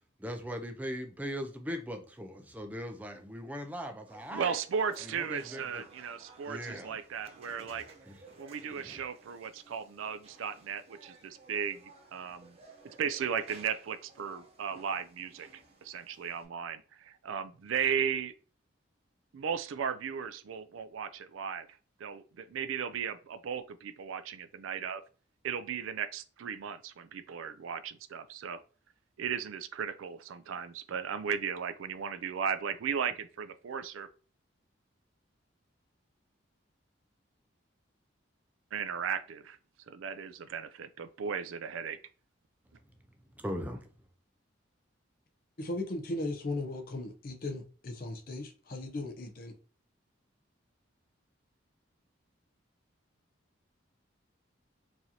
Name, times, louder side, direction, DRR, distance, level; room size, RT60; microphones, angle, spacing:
voice 1, 0.2-4.6 5.0-5.8 6.5-7.0 7.7-7.8 8.1-8.2 8.6-9.0 43.4-43.9, equal, 10° right, 0.4 m, -39 dB
sound 1, 4.1-16.5, right 3 dB, 30° right, 0.8 m, -56 dB
voice 2, 4.3-7.8 8.4-12.6 13.0-18.3 19.3-21.7 22.0-25.0 25.4-28.6 29.2-34.1 38.7-39.6 39.9-42.0, right 7 dB, 85° right, 0.4 m, -36 dB
voice 3, 45.6-49.5, left 2 dB, 45° left, 0.6 m, -37 dB
4.7 x 2.7 x 2.8 m
head